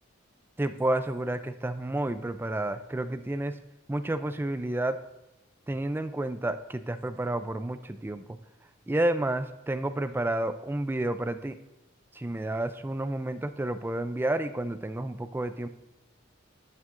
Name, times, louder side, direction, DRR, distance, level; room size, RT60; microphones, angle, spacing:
voice 1, 0.6-3.6 3.9-5.0 5.7-8.4 8.9-11.6 12.1-15.7, right 1 dB, 10° right, 11 dB, 0.3 m, -30 dB
11.0 x 9.2 x 2.5 m, 0.94 s
head